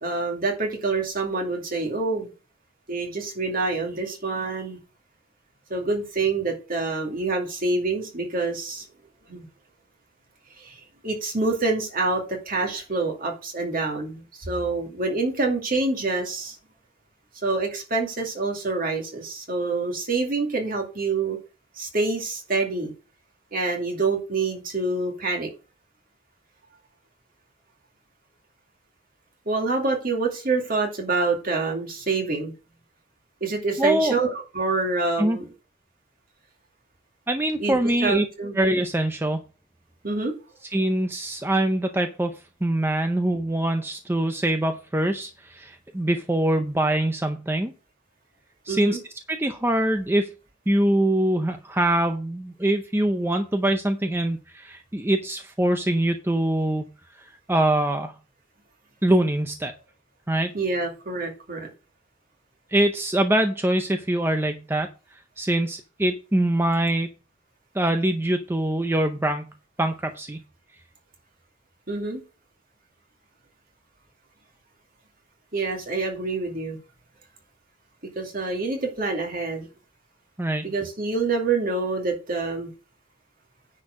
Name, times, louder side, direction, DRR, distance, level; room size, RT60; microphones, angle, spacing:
voice 1, 0.0-2.3 2.9-4.8 5.7-8.9 9.3-9.5 10.6-16.5 17.4-21.4 21.8-22.9 23.5-25.5 29.5-32.5 33.4-35.4 37.6-38.5 40.0-40.3 48.7-49.0 60.5-61.7 71.9-72.2 75.5-76.8 78.2-79.7 80.6-82.7, right 3 dB, 45° right, 1 dB, 2.4 m, -26 dB
voice 2, 33.8-34.2 35.2-35.4 37.3-38.3 38.6-39.4 40.7-47.7 48.7-49.0 49.3-50.3 50.7-56.9 57.2-58.1 59.0-59.7 60.3-60.5 62.7-67.1 67.7-69.5 69.8-70.4 80.4-80.7, right 1 dB, 10° right, 7 dB, 0.6 m, -24 dB
9.7 x 4.5 x 6.2 m, 0.34 s
head